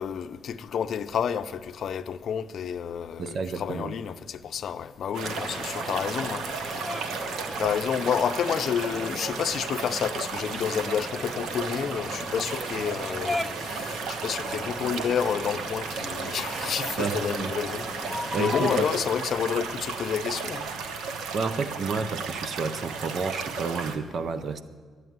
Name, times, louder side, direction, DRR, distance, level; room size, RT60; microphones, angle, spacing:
voice 1, 0.0-6.8 7.1-20.7, left 8 dB, 60° left, 0.5 m, -30 dB
voice 2, 3.2-3.9 17.0-17.5 18.3-19.0 21.3-24.6, right 4 dB, 55° right, 0.6 m, -30 dB
sound 1, 5.1-24.0, right 5 dB, 80° right, 1.1 m, -34 dB
sound 2, 5.2-18.8, left 1 dB, ahead, 0.5 m, -38 dB
12.0 x 8.1 x 9.4 m
cardioid pair, 90°, 0 cm